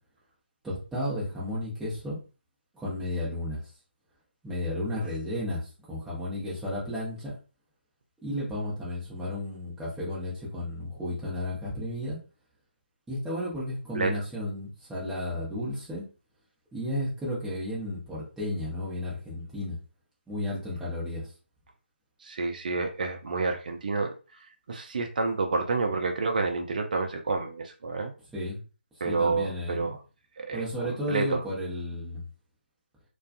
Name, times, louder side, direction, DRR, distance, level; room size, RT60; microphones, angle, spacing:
voice 1, 0.6-2.2 2.7-3.6 4.4-7.3 8.2-12.2 13.1-16.0 16.7-19.8 20.3-21.3 28.3-28.6 29.0-30.0 30.5-32.2, left 1 dB, 5° right, -9 dB, 0.8 m, -33 dB
voice 2, 22.2-24.1 24.7-28.1 29.0-30.0 30.4-31.4, right 3 dB, 45° right, 4 dB, 0.4 m, -29 dB
2.3 x 2.2 x 2.5 m, 0.33 s
figure-of-eight pair, 150°, 6 cm